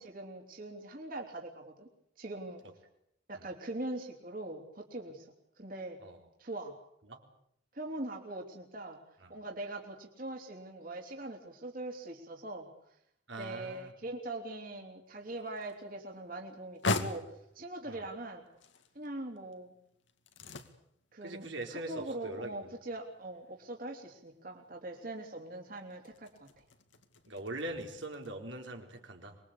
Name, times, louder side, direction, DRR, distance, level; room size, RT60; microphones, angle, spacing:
voice 1, 0.0-1.9 2.2-2.6 3.3-5.3 5.6-6.0 6.4-6.7 7.7-9.0 9.3-12.7 13.4-17.3 17.5-18.4 18.9-19.7 21.1-26.5, right 2 dB, 50° right, 1 dB, 3.4 m, -42 dB
voice 2, 13.3-13.9 17.9-18.1 21.2-22.5 27.2-29.4, right 2 dB, 85° right, 2 dB, 4.3 m, -42 dB
sound 1, 15.1-28.3, left 3 dB, 85° left, 2.3 m, -43 dB
25.0 x 22.0 x 8.5 m, 0.72 s
head